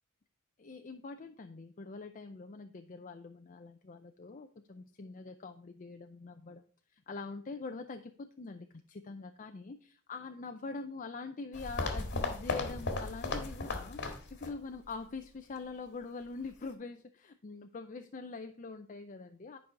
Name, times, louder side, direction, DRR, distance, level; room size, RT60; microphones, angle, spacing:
voice 1, 0.6-6.6 6.9-14.0 14.4-19.6, left 4 dB, 40° left, 6 dB, 0.5 m, -44 dB
sound 1, 11.5-14.6 14.8-14.9 15.6-15.7, left 3 dB, 55° left, 1.8 m, -36 dB
10.5 x 5.4 x 4.6 m, 0.42 s
head